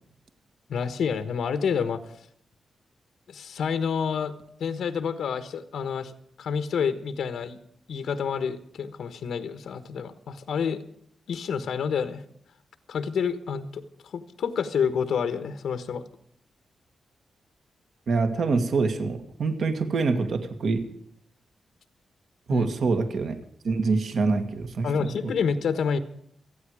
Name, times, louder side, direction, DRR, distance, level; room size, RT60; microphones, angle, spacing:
voice 1, 0.7-2.0 3.3-4.3 4.6-7.6 7.9-10.8 11.3-12.2 12.9-16.0 22.5-22.7 24.8-26.0, left 6 dB, 80° left, 10 dB, 1.3 m, -28 dB
voice 2, 18.1-20.8 22.5-23.4 23.6-25.1, right 4 dB, 55° right, 7 dB, 2.1 m, -25 dB
28.0 x 9.5 x 4.9 m, 0.69 s
wide cardioid pair, 170°, 0 cm